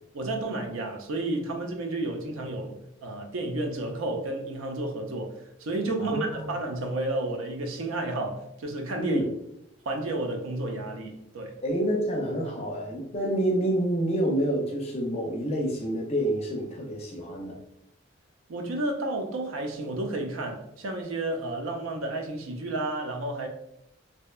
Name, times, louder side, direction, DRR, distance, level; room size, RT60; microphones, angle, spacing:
voice 1, 0.1-9.2 9.9-11.6 18.5-23.5, right 2 dB, 85° right, 0.5 m, -31 dB
voice 2, 6.0-6.5 9.0-9.2 11.6-17.6, right 1 dB, 30° left, 0.4 m, -28 dB
2.7 x 2.1 x 2.3 m
head